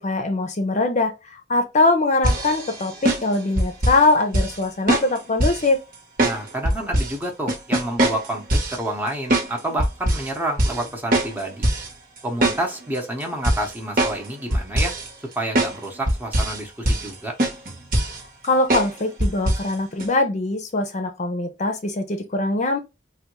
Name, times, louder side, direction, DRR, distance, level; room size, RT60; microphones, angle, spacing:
voice 1, 0.0-5.8 18.4-22.8, left 2 dB, 40° left, 0.6 m, -22 dB
sound 1, 2.2-4.0 4.3-4.6 4.9-5.7 6.2-7.1 7.5-8.8 9.3-9.5 9.8-10.3 10.6-10.8 11.1-11.9 12.2-13.0 13.4-14.3 14.5-15.1 15.5-15.8 16.1-16.6 16.9-17.1 17.4-18.2 18.7-18.9 19.2-19.7 20.0-20.1, right 1 dB, 50° right, 1.0 m, -21 dB
voice 2, 6.2-11.7 12.2-14.9 15.3-17.3, right 1 dB, 10° right, 0.8 m, -29 dB
3.4 x 2.3 x 3.0 m
head